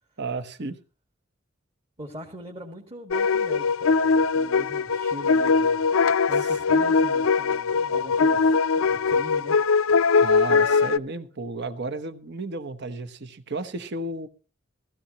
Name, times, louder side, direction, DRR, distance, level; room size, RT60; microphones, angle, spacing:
voice 1, 0.2-0.8 10.1-14.3, right 3 dB, 55° right, 9 dB, 1.0 m, -33 dB
voice 2, 2.0-4.0 4.3-5.8 6.3-8.5 8.8-9.6 10.0-10.1, right 1 dB, 25° right, 1 dB, 1.7 m, -41 dB
sound 1, 3.1-11.0, left 5 dB, 75° left, 0.5 m, -21 dB
16.0 x 14.5 x 2.9 m, 0.36 s
head